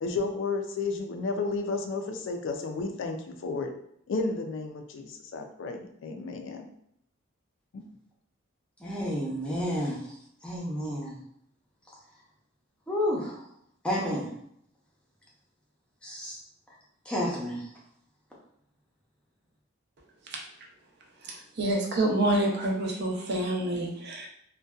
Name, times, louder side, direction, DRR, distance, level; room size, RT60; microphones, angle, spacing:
voice 1, 0.0-3.7 4.1-6.7 7.7-7.8, left 3 dB, 60° left, 0.3 m, -32 dB
voice 2, 8.8-10.2 10.4-11.2 12.9-13.4 13.8-14.3 16.0-16.4 17.1-17.7, equal, 5° left, 0.5 m, -30 dB
voice 3, 21.2-24.3, right 1 dB, 50° right, 0.5 m, -27 dB
2.5 x 2.1 x 2.3 m
head